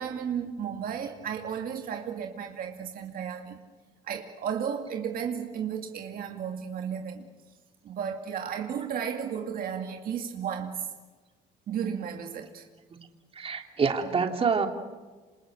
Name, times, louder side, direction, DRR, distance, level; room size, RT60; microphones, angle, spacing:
voice 1, 0.0-3.6 4.1-7.3 7.8-10.9 11.7-12.7, right 8 dB, 60° right, 3 dB, 2.3 m, -34 dB
voice 2, 13.3-14.7, right 5 dB, 35° right, 4 dB, 3.0 m, -26 dB
28.0 x 27.0 x 6.6 m, 1.3 s
cardioid pair, 110°, 17 cm